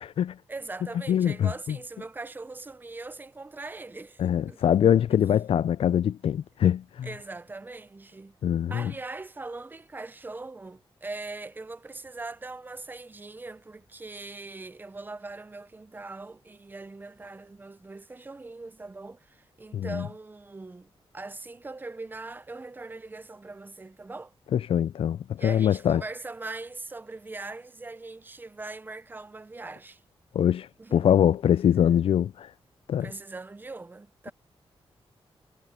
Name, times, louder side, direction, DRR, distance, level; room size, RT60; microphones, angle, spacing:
voice 1, 0.5-4.7 7.0-8.4 8.7-24.3 25.4-30.0 30.8-31.4 33.0-34.3, right 3 dB, 20° right, 0.7 m, -41 dB
voice 2, 1.1-1.8 4.2-7.1 8.4-8.9 19.7-20.1 24.5-26.0 30.3-32.5 32.9-33.1, left 9 dB, 70° left, 0.4 m, -23 dB
wide cardioid pair, 120°, 10 cm